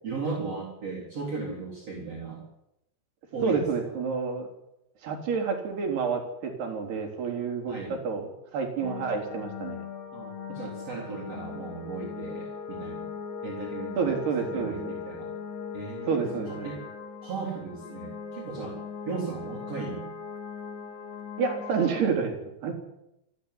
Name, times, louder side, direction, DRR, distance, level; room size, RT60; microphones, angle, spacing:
voice 1, 0.0-2.5 3.3-3.7 7.7-8.0 10.1-13.1 13.4-15.3 15.7-16.8 17.2-18.8 19.0-20.1, right 4 dB, 40° right, -2 dB, 4.4 m, -36 dB
voice 2, 3.4-4.5 5.0-9.8 14.0-14.7 16.1-16.8 21.4-22.3 22.6-22.7, right 5 dB, 70° right, 3 dB, 5.8 m, -29 dB
sound 1, 8.8-22.0, left 6 dB, 60° left, 4.4 m, -39 dB
28.0 x 11.5 x 9.9 m, 0.88 s
omnidirectional pair, 4.8 m